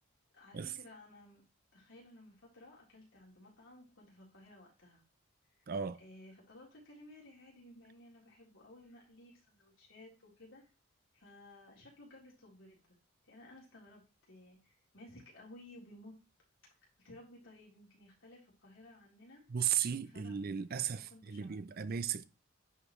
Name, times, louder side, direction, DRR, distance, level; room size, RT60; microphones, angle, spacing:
voice 1, 0.3-1.4 1.7-5.0 6.0-10.7 11.1-14.0 14.3-16.2 17.0-19.4 20.1-20.4 20.9-21.6, left 1 dB, 65° left, 3.9 m, -56 dB
voice 2, 5.7-6.0 19.5-22.2, right 8 dB, 45° right, 0.4 m, -35 dB
9.8 x 4.9 x 3.2 m
head